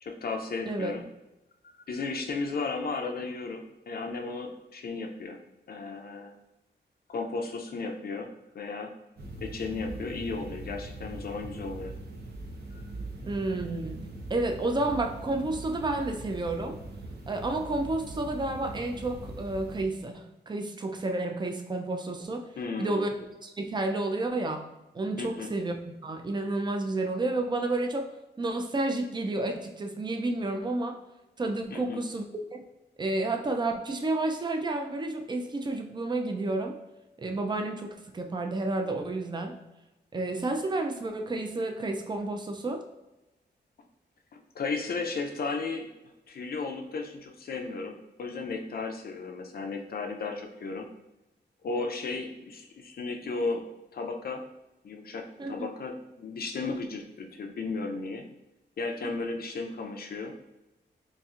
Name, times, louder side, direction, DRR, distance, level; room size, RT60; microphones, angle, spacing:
voice 1, 0.0-1.0 1.6-5.4 5.7-6.3 7.1-8.3 8.5-8.9 9.4-11.9 12.7-12.8 22.6-23.1 25.2-25.5 31.7-32.0 44.5-50.9 51.6-53.6 53.9-54.4 54.8-58.2 58.8-60.3, left 4 dB, 55° left, 3 dB, 0.5 m, -34 dB
voice 2, 0.7-1.0 13.2-14.0 14.3-16.8 17.3-22.5 22.8-23.1 23.4-24.7 24.9-25.8 26.0-28.1 28.4-31.0 31.4-32.6 33.0-36.8 37.2-39.6 40.1-42.8 55.4-55.7 59.0-59.1, right 2 dB, 25° right, 4 dB, 0.4 m, -30 dB
sound 1, 9.2-19.8, right 2 dB, 60° right, 0.7 m, -41 dB
4.1 x 2.5 x 2.4 m, 1.0 s
wide cardioid pair, 115°, 18 cm